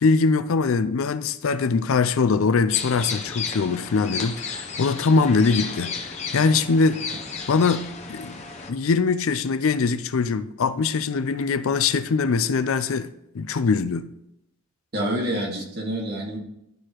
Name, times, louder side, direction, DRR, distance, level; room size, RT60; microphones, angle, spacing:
voice 1, 0.0-7.0 7.5-8.4 8.7-14.1, left 4 dB, 70° left, 0.4 m, -22 dB
sound 1, 2.7-8.7, left 5 dB, 30° left, 0.8 m, -33 dB
voice 2, 14.9-16.4, right 1 dB, 45° right, 1.7 m, -27 dB
12.0 x 4.7 x 3.0 m
head